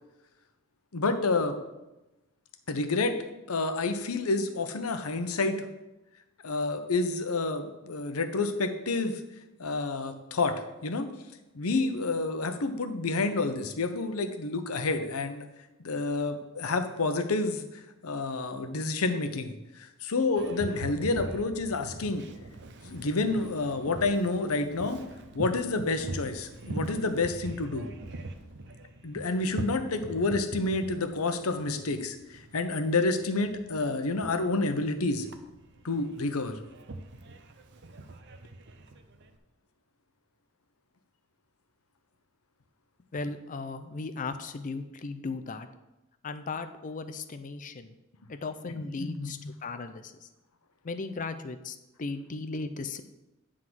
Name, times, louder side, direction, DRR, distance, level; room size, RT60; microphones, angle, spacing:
voice 1, 0.9-1.6 2.7-3.2 3.5-5.7 6.4-9.2 9.6-10.5 10.8-11.1 11.5-15.5 15.8-22.3 22.8-25.0 25.3-27.9 29.0-35.3 35.8-36.6 48.6-49.5, left 3 dB, 90° left, 8 dB, 0.8 m, -29 dB
Boat Water vehicle, 20.3-39.4, right 2 dB, 55° right, 0.6 m, -42 dB
voice 2, 43.1-45.7 46.2-47.9 48.3-50.3 50.8-53.0, left 3 dB, 40° left, 9 dB, 0.5 m, -37 dB
9.6 x 3.7 x 6.1 m, 0.99 s
head